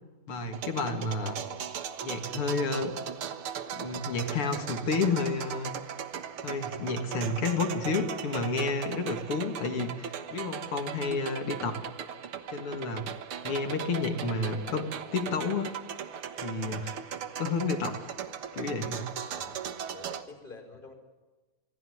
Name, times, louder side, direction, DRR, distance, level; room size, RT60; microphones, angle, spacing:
voice 1, 0.3-1.4 2.0-2.9 3.7-5.7 6.4-11.8 12.5-13.0 13.4-15.7 16.4-18.0 18.5-19.1, left 3 dB, 85° left, 6 dB, 3.3 m, -31 dB
sound 1, 0.5-20.2, right 8 dB, 85° right, 2.2 m, -38 dB
voice 2, 1.2-1.6 19.3-20.9, left 3 dB, 20° left, 5 dB, 4.7 m, -48 dB
25.0 x 17.5 x 9.5 m, 1.3 s
omnidirectional pair, 2.3 m